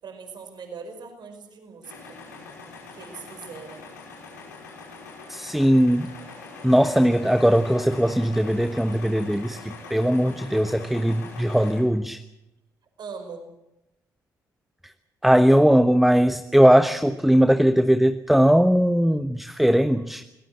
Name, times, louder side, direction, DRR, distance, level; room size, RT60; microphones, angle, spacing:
voice 1, 0.0-2.2 2.9-3.8 13.0-13.5, right 5 dB, 50° right, 6 dB, 5.1 m, -40 dB
sound 1, 1.8-11.8, left 4 dB, 80° left, 5.4 m, -42 dB
voice 2, 5.3-6.1 6.6-12.2 15.2-20.2, equal, ahead, 10 dB, 1.2 m, -19 dB
23.0 x 19.0 x 7.8 m, 0.89 s
figure-of-eight pair, 45°, 9 cm